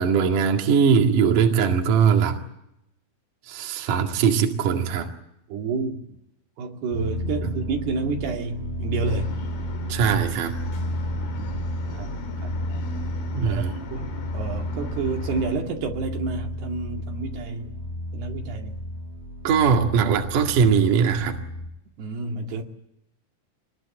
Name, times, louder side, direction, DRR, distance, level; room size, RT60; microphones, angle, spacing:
voice 1, 0.0-2.4 3.5-5.1 9.9-10.6 13.3-13.7 19.4-21.4, right 6 dB, 60° right, 3.4 m, -20 dB
voice 2, 5.5-6.2 6.6-9.4 11.1-12.1 12.4-12.6 13.4-17.7 18.1-18.8 22.0-22.6, right 4 dB, 80° right, 4.3 m, -30 dB
sound 1, 6.9-21.7, equal, 20° left, 3.0 m, -32 dB
sound 2, 9.0-15.6, left 3 dB, 75° left, 4.7 m, -37 dB
25.0 x 21.0 x 8.7 m
omnidirectional pair, 4.6 m